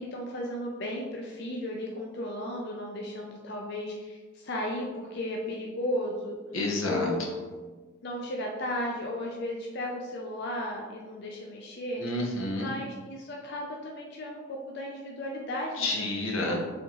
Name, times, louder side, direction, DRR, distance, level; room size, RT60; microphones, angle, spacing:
voice 1, 0.0-6.4 6.8-7.2 8.0-12.0 12.5-15.9 16.4-16.6, left 1 dB, 55° left, -1 dB, 0.5 m, -35 dB
voice 2, 6.5-7.3 12.0-12.7 15.8-16.6, left 2 dB, 85° left, 0 dB, 0.9 m, -29 dB
4.3 x 3.6 x 2.9 m, 1.4 s
head